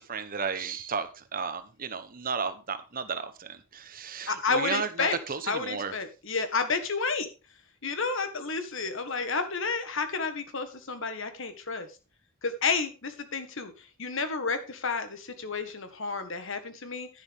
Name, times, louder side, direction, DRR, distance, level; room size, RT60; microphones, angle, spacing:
voice 1, 0.0-5.9, right 5 dB, 40° right, 11 dB, 1.0 m, -34 dB
voice 2, 4.3-5.2 5.5-7.3 7.8-11.9 12.4-13.7 14.0-17.1, left 4 dB, 65° left, 9 dB, 1.7 m, -31 dB
10.5 x 10.5 x 3.6 m, 0.30 s
head